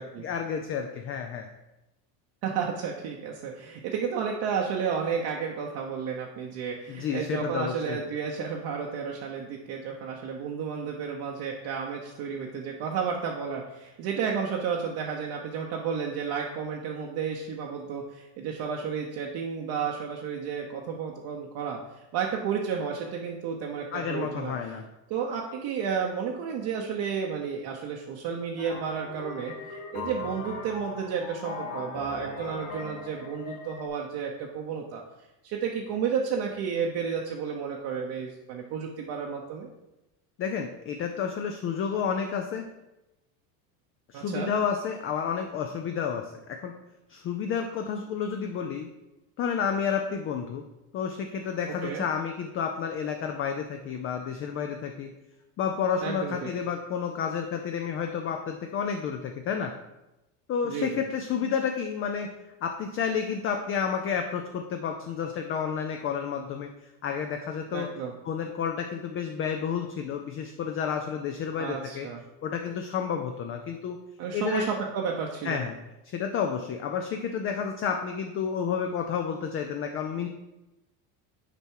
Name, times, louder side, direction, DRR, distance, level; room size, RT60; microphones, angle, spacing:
voice 1, 0.2-1.5 6.9-8.0 23.9-24.8 40.4-42.7 44.1-46.7 47.1-48.9 49.4-50.6 50.9-55.1 55.6-59.7 60.5-62.3 62.6-66.7 67.0-67.9 68.2-72.1 72.4-74.0 74.3-74.6 75.4-75.8 76.1-80.3, left 7 dB, 30° left, 4 dB, 0.3 m, -30 dB
voice 2, 2.4-21.8 22.1-24.5 25.1-35.0 35.4-39.7 44.1-44.5 51.8-52.0 56.0-56.5 60.6-61.0 67.7-68.2 71.6-72.2 74.2-75.6, right 6 dB, 50° right, 0 dB, 0.8 m, -32 dB
sound 1, 28.6-33.9, left 3 dB, 60° left, 1.8 m, -39 dB
6.8 x 4.4 x 4.5 m, 0.97 s
cardioid pair, 135°, 47 cm